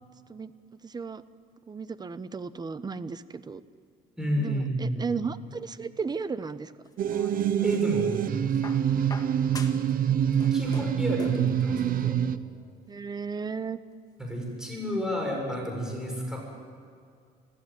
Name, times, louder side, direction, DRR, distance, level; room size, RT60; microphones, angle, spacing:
voice 1, 0.8-1.2 1.7-3.6 4.4-6.7 12.9-13.8, right 5 dB, 25° right, 14 dB, 1.0 m, -34 dB
voice 2, 4.2-5.0 7.6-8.2 10.5-12.2 14.2-16.5, equal, 5° right, 0 dB, 7.1 m, -31 dB
sound 1, 6.8-7.8 8.6-10.0 10.2-11.5 12.6-12.7, left 3 dB, 20° left, 2.1 m, -44 dB
sound 2, 7.0-12.4, right 9 dB, 55° right, 0.9 m, -26 dB
25.0 x 16.0 x 9.1 m, 2.2 s
cardioid pair, 110°, 17 cm